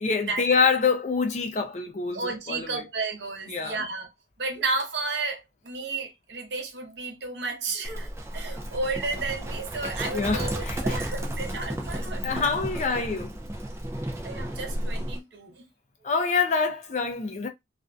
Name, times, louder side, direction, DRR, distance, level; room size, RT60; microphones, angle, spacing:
voice 1, 0.0-2.9 3.5-3.9 10.1-11.0 12.2-13.4 16.0-17.5, left 5 dB, 40° left, 0.4 m, -26 dB
voice 2, 2.1-4.1 4.4-12.5 12.9-13.0 14.2-15.6, right 3 dB, 80° right, 0.8 m, -32 dB
Livestock farm animals working animals, 7.8-15.2, right 1 dB, 15° right, 0.4 m, -33 dB
2.4 x 2.1 x 2.5 m
head